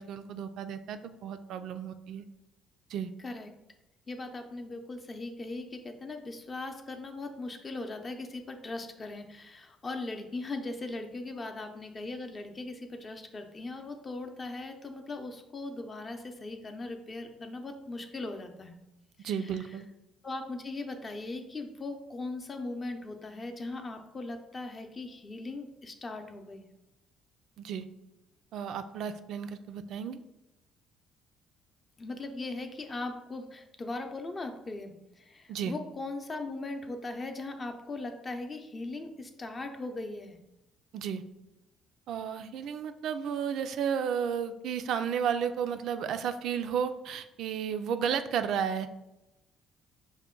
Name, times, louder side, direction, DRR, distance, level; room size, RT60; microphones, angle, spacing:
voice 1, 0.0-2.3 2.9-3.1 19.2-19.9 27.6-27.9 28.5-30.2 35.5-35.8 40.9-41.2 42.1-48.9, right 7 dB, 70° right, 9 dB, 0.3 m, -33 dB
voice 2, 3.2-3.5 4.1-18.8 19.2-19.7 20.2-26.6 32.0-40.4, left 2 dB, 30° left, 5 dB, 0.6 m, -39 dB
5.6 x 2.1 x 3.7 m, 0.92 s
cardioid pair, 95°, 0 cm